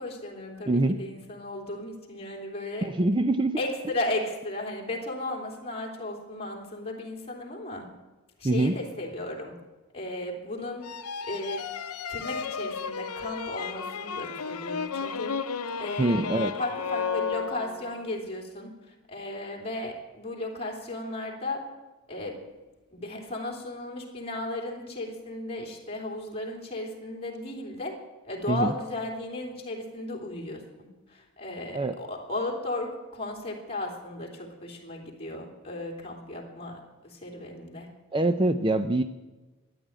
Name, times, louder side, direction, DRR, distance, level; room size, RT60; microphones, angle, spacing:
voice 1, 0.0-2.9 3.6-7.9 8.4-9.6 9.9-11.0 11.2-11.7 12.1-15.3 15.8-21.6 22.1-22.4 22.9-27.9 28.2-37.9, left 1 dB, 25° left, 0 dB, 3.1 m, -35 dB
voice 2, 0.7-1.0 2.8-3.6 8.4-8.7 16.0-16.6 28.5-28.7 31.7-31.9 38.1-39.0, right 2 dB, 20° right, 9 dB, 0.5 m, -24 dB
sound 1, 10.8-18.0, left 6 dB, 80° left, 0.7 m, -33 dB
14.0 x 11.0 x 8.8 m, 1.2 s
head